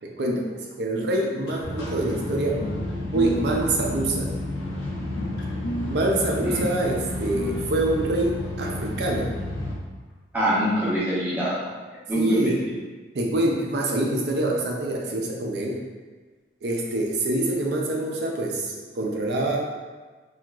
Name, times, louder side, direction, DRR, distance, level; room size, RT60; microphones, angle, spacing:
voice 1, 0.0-2.6 3.1-4.3 5.9-9.3 12.1-12.6 13.1-15.8 16.6-19.7, right 1 dB, 60° right, -1 dB, 0.4 m, -25 dB
sound 1, 1.5-8.9, right 1 dB, 65° left, 0.4 m, -37 dB
sound 2, 1.6-9.7, left 1 dB, 85° left, 0.8 m, -31 dB
voice 2, 10.3-11.7 12.1-12.5, equal, 10° right, -8 dB, 0.6 m, -24 dB
2.8 x 2.4 x 2.2 m, 1.4 s
head